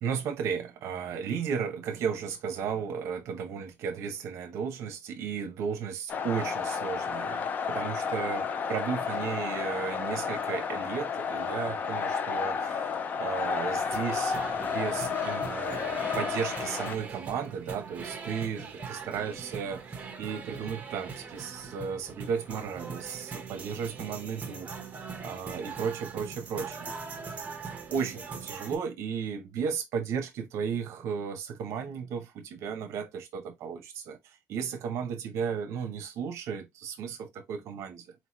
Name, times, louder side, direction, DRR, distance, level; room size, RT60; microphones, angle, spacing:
voice 1, 0.0-24.7 25.2-27.1 27.9-38.1, right 6 dB, 60° right, 0.7 m, -34 dB
sound 1, 6.1-17.0, left 6 dB, 30° left, 0.4 m, -32 dB
sound 2, 13.8-28.8, right 5 dB, 25° right, 0.9 m, -41 dB
4.3 x 2.9 x 2.9 m
cardioid pair, 165°, 6 cm